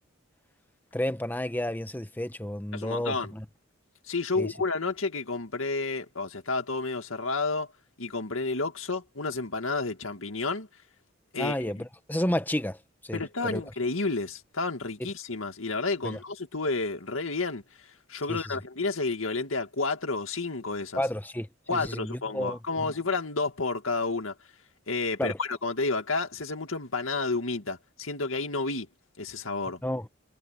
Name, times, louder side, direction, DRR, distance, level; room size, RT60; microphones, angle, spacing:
voice 1, 0.9-3.4 4.4-4.5 11.4-12.8 13.0-13.6 16.0-16.2 18.3-18.5 21.0-22.9 25.2-25.4 29.8-30.1, left 1 dB, 10° left, 1.1 m, -31 dB
voice 2, 2.7-3.3 4.1-7.7 8.0-10.7 11.3-11.8 13.1-17.6 18.1-21.0 21.7-24.3 24.9-28.9 29.2-29.8, left 3 dB, 85° left, 2.2 m, -30 dB
head